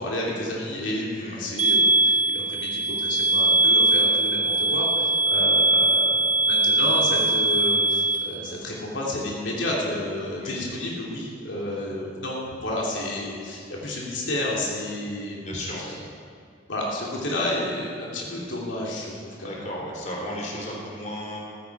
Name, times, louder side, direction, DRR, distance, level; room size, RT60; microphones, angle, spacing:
voice 1, 0.0-15.9 16.7-19.1 19.4-19.5, left 1 dB, 85° left, -3 dB, 2.7 m, -31 dB
sound 1, 1.6-8.2, right 2 dB, 45° right, 3.7 m, -21 dB
voice 2, 15.4-16.0 19.4-21.5, left 1 dB, 40° left, -2 dB, 3.2 m, -34 dB
14.5 x 14.0 x 4.7 m, 2.3 s
head